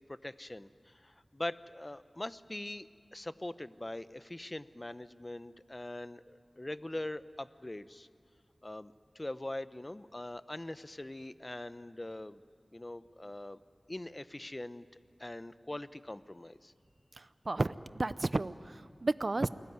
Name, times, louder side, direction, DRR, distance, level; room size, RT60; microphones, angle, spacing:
voice 1, 0.1-8.1 8.6-12.4 12.7-13.6 13.9-14.9 15.2-16.7, left 1 dB, 30° left, 14 dB, 0.8 m, -42 dB
voice 2, 17.2-19.5, right 2 dB, 55° right, 14 dB, 0.6 m, -33 dB
29.0 x 20.5 x 9.5 m, 2.3 s
wide cardioid pair, 55°, 0 cm